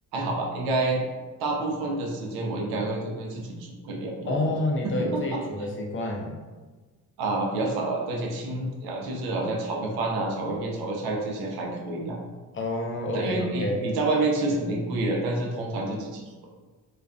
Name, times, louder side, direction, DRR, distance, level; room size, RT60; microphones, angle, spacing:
voice 1, 0.1-1.0 1.4-4.4 4.8-5.4 7.2-12.2 13.1-16.5, right 2 dB, 80° right, 0 dB, 0.6 m, -28 dB
voice 2, 4.3-6.4 12.5-13.8, left 1 dB, 35° left, 0 dB, 0.5 m, -28 dB
2.4 x 2.2 x 2.4 m, 1.3 s
supercardioid pair, 80°, 37 cm